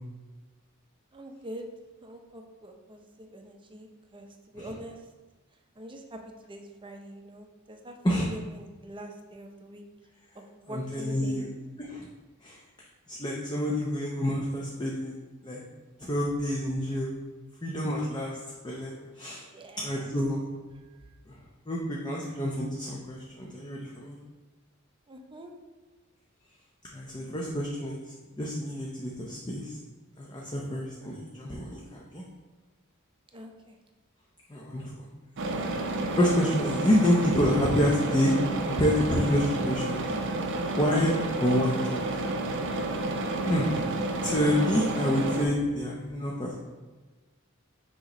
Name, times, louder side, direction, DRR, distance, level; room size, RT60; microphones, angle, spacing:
voice 1, 1.1-1.7 2.0-5.1 5.8-9.8 10.3-11.5 19.5-20.1 20.7-21.1 25.1-25.5 33.3-33.8 43.6-43.8, equal, 25° right, 3 dB, 0.6 m, -44 dB
voice 2, 10.7-11.5 11.9-12.1 12.4-12.6 13.1-15.1 15.4-15.7 16.1-17.1 17.6-18.4 18.6-19.4 19.8-20.4 21.3-21.4 21.7-24.2 26.9-29.8 30.2-32.2 34.5-35.1 36.1-38.3 38.7-40.0 40.7-42.0 43.4-43.7 44.2-46.6, equal, 20° left, -3 dB, 0.7 m, -28 dB
sound 1, 35.4-45.5, right 2 dB, 60° right, 0.7 m, -30 dB
6.4 x 3.0 x 5.2 m, 1.3 s
head